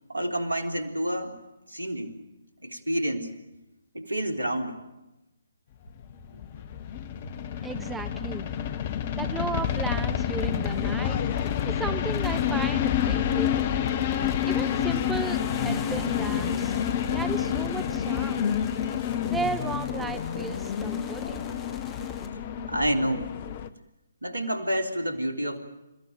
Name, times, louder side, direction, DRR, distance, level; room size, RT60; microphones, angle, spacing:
voice 1, 0.1-1.4 1.7-2.1 2.6-3.4 3.9-4.8 6.3-6.6 22.7-23.3 24.2-25.6, right 1 dB, 75° right, 5 dB, 3.5 m, -29 dB
sound 1, 6.0-23.7, left 9 dB, 35° left, 1.1 m, -28 dB
voice 2, 7.6-8.5 9.1-11.2 11.7-13.7 14.5-16.8 17.1-18.4 19.2-21.5, right 4 dB, 5° right, 9 dB, 0.9 m, -35 dB
sound 2, 10.4-22.3, left 4 dB, 15° left, 2.3 m, -45 dB
29.0 x 15.0 x 9.0 m, 0.97 s
figure-of-eight pair, 135°, 0 cm